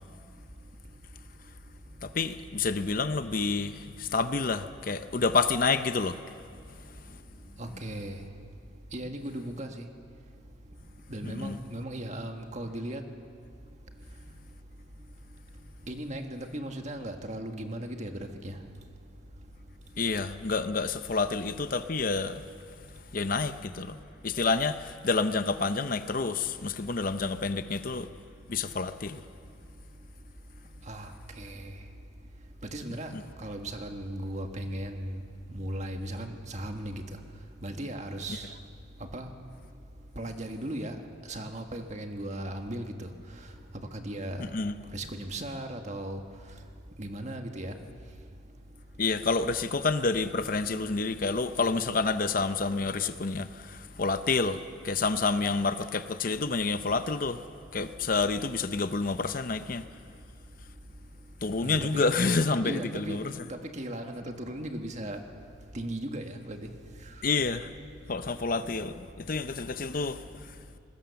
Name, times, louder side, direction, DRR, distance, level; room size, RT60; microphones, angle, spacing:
voice 1, 2.0-6.2 11.2-11.6 20.0-22.4 23.1-23.9 24.2-28.1 28.5-29.2 33.1-33.2 44.4-44.8 49.0-54.6 54.8-57.4 57.7-59.8 61.4-63.3 67.2-67.7 68.1-70.2, left 4 dB, 45° left, 0.7 m, -28 dB
voice 2, 7.6-8.2 8.9-9.9 11.1-13.0 15.9-18.6 30.9-31.7 32.7-35.2 35.5-37.0 37.6-38.6 39.1-39.3 40.2-41.0 41.3-43.1 43.7-44.4 44.9-46.2 47.0-47.8 61.6-62.1 62.6-63.2 63.5-65.2 65.7-66.7, right 1 dB, 35° right, 1.7 m, -37 dB
26.0 x 20.5 x 7.0 m
head